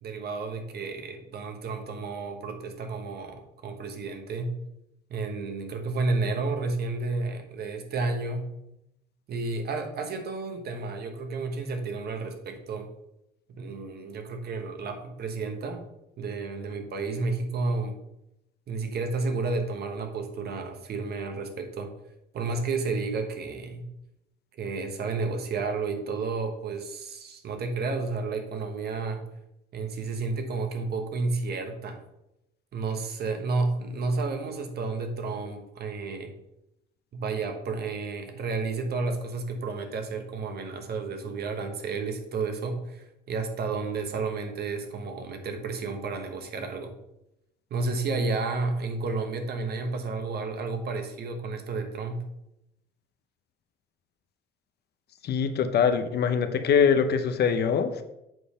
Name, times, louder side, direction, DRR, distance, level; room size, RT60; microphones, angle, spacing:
voice 1, 0.0-4.5 5.1-8.5 9.3-12.9 13.5-15.9 16.2-18.0 18.7-21.9 22.3-23.9 24.6-29.2 29.7-32.0 32.7-36.3 37.1-46.9 47.7-52.2, right 3 dB, 60° right, 5 dB, 1.1 m, -31 dB
voice 2, 55.2-58.0, left 6 dB, 60° left, 9 dB, 0.7 m, -23 dB
7.6 x 3.3 x 5.5 m, 0.85 s
cardioid pair, 85°, 19 cm